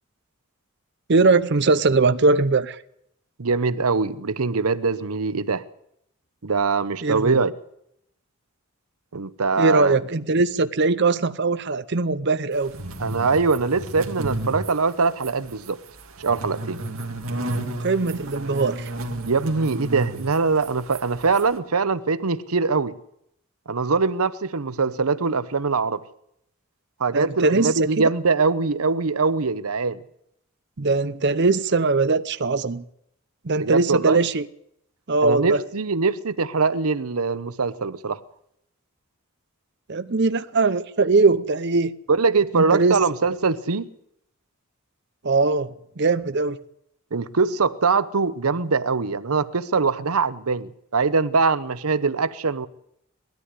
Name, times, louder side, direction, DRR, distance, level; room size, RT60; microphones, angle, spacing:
voice 1, 1.1-2.8 7.0-7.4 9.6-12.7 17.8-18.9 27.1-28.1 30.8-32.8 33.4-34.4 35.1-35.6 39.9-41.9 42.5-43.0 45.2-46.6, right 3 dB, 50° right, 0.7 m, -21 dB
voice 2, 3.4-5.6 6.4-7.6 9.1-9.9 13.0-15.8 16.2-16.8 19.2-23.0 23.7-26.0 27.0-30.0 33.6-34.2 35.2-38.2 42.1-43.9 47.1-52.7, right 4 dB, 90° right, 0.9 m, -22 dB
sound 1, 12.6-21.6, right 1 dB, 75° right, 2.5 m, -33 dB
20.0 x 13.5 x 9.7 m
head